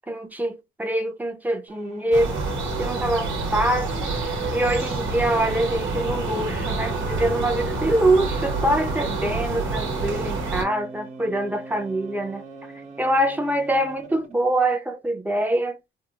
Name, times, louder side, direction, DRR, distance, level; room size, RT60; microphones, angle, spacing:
voice 1, 0.1-2.4 2.8-4.1 4.5-12.4 13.0-15.8, right 1 dB, 10° right, 0.7 m, -24 dB
sound 1, 1.7-14.4, right 3 dB, 40° right, 1.1 m, -42 dB
sound 2, 2.1-10.6, right 3 dB, 80° right, 1.2 m, -27 dB
3.4 x 2.1 x 2.9 m
cardioid pair, 90°, 20 cm